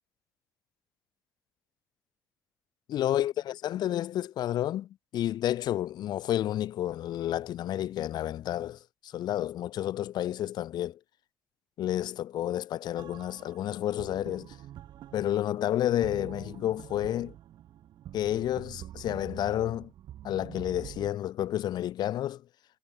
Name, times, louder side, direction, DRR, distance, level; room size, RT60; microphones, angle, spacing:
voice 1, 2.9-11.0 11.8-14.6 15.1-17.3 18.1-19.9 20.2-22.4, left 12 dB, 55° left, 0.6 m, -30 dB
sound 1, 13.0-21.1, right 12 dB, 55° right, 1.5 m, -46 dB
figure-of-eight pair, 50°, 9 cm